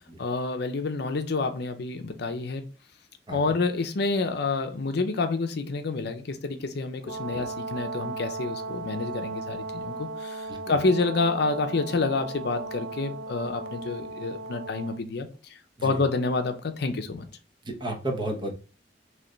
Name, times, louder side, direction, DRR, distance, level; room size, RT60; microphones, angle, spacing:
voice 1, 0.2-2.6 3.3-17.3, left 3 dB, 65° left, 0.5 m, -28 dB
Brass instrument, 7.0-15.0, right 3 dB, 60° right, 1.5 m, -36 dB
voice 2, 17.7-18.5, right 1 dB, 25° right, 0.9 m, -32 dB
3.2 x 3.1 x 3.8 m
head